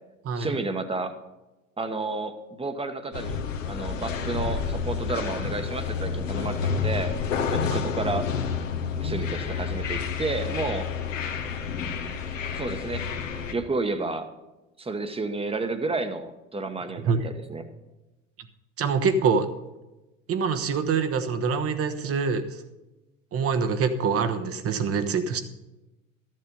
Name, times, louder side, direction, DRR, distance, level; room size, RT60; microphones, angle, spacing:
voice 1, 0.3-1.1 1.8-3.4 3.6-7.1 7.5-8.3 9.0-10.9 12.5-13.1 13.5-14.3 14.8-17.6, right 3 dB, 15° right, 9 dB, 1.2 m, -31 dB
sound 1, 3.1-13.5, left 6 dB, 80° left, 1.3 m, -29 dB
voice 2, 18.8-19.5 20.3-22.6 23.3-25.4, right 5 dB, 35° right, 8 dB, 1.2 m, -25 dB
13.0 x 7.6 x 5.4 m, 1.0 s
hypercardioid pair, 75°, 38 cm